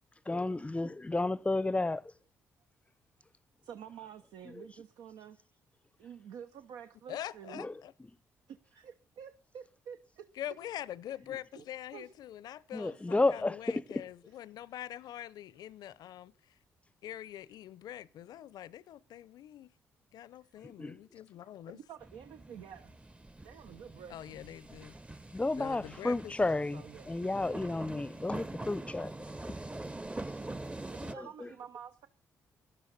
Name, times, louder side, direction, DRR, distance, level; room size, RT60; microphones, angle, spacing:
voice 1, 0.3-2.0 4.6-4.7 7.5-7.7 12.7-14.0 20.6-21.0 25.3-29.1 29.5-29.6 31.0-31.5, left 2 dB, 15° left, 0.7 m, -32 dB
voice 2, 3.6-5.5 6.0-7.6 8.5-10.3 11.5-11.6 11.9-12.1 20.8-20.9 21.7-23.0 23.4-24.4 26.7-27.1 30.9-32.1, right 8 dB, 75° right, 0.9 m, -49 dB
voice 3, 7.1-7.9 10.4-16.5 17.0-19.7 20.1-21.8 24.1-24.9 25.5-26.5, left 11 dB, 70° left, 0.7 m, -44 dB
sound 1, 22.0-31.1, right 2 dB, 15° right, 0.8 m, -44 dB
17.5 x 12.0 x 4.2 m
hypercardioid pair, 45°, 7 cm